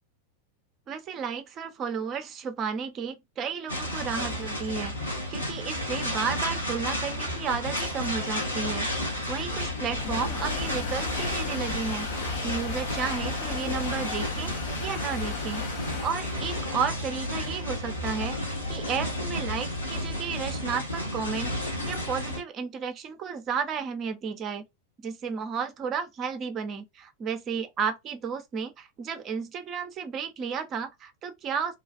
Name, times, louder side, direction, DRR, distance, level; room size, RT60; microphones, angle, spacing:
voice 1, 0.9-4.9 5.3-8.9 9.3-14.5 14.8-24.6 25.0-31.8, right 6 dB, 30° right, 0.6 m, -33 dB
sound 1, 3.7-22.4, left 1 dB, 80° left, 1.3 m, -32 dB
sound 2, 7.4-20.3, left 5 dB, 50° left, 0.7 m, -38 dB
3.1 x 2.4 x 2.3 m
figure-of-eight pair, 90°, 0 cm